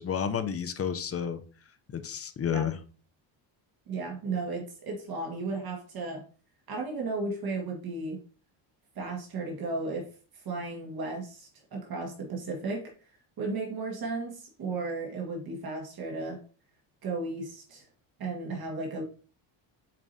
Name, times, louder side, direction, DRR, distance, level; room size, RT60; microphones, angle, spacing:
voice 1, 0.0-1.4 1.9-2.8, left 8 dB, 30° left, 10 dB, 0.6 m, -31 dB
voice 2, 3.9-6.2 6.7-8.2 9.0-10.1 10.3-12.9 13.4-16.4 17.0-17.8 18.2-19.0, right 3 dB, 50° right, 0 dB, 1.7 m, -34 dB
7.5 x 4.7 x 2.7 m, 0.38 s
cardioid pair, 120°, 46 cm